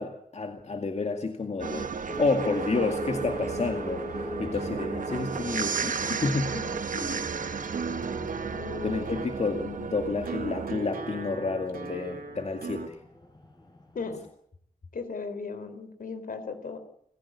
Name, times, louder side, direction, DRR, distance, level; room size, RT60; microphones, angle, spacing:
voice 1, 0.0-4.0 4.4-6.5 8.8-13.0, left 3 dB, 50° left, 5 dB, 2.1 m, -30 dB
sound 1, 1.6-10.8, right 6 dB, 65° right, 1.0 m, -34 dB
sound 2, 2.0-14.3, left 2 dB, 30° left, 4.2 m, -43 dB
sound 3, 2.1-12.9, right 4 dB, 85° right, 2.7 m, -40 dB
voice 2, 6.5-7.2 8.5-9.2 13.9-14.2 14.9-16.8, left 4 dB, 70° left, 9 dB, 3.8 m, -37 dB
27.5 x 15.0 x 8.4 m, 0.72 s
wide cardioid pair, 110°, 15 cm